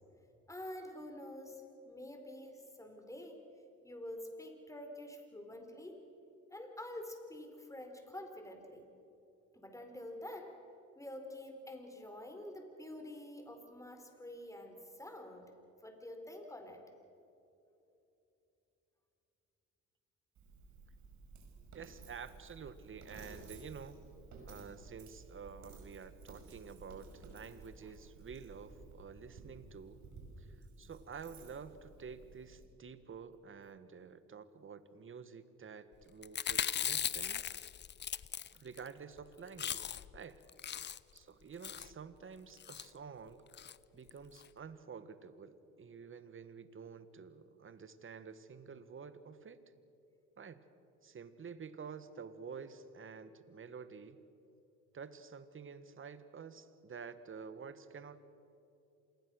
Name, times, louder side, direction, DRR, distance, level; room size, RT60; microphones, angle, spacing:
voice 1, 0.5-3.4 3.8-6.0 6.5-8.9 9.5-10.6 11.0-15.5 15.8-16.8 27.8-27.9, left 1 dB, 10° left, 5 dB, 4.3 m, -48 dB
Coin (dropping), 20.3-32.6, right 3 dB, 60° right, 5.8 m, -54 dB
voice 2, 21.7-24.0 24.5-30.0 30.4-37.4 38.5-40.4 41.1-43.4 43.9-49.6 50.4-50.6 51.0-54.2 54.9-58.2, right 6 dB, 40° right, 13 dB, 1.6 m, -50 dB
Chewing mastication, 36.2-38.9 39.2-39.3 39.5-40.2 40.5-41.2 41.6-41.9 42.6-42.9 43.5-43.8 44.1-44.2 44.4-44.5, left 9 dB, 35° left, 0.6 m, -38 dB
27.0 x 20.5 x 6.5 m, 2.9 s
supercardioid pair, 80°, 33 cm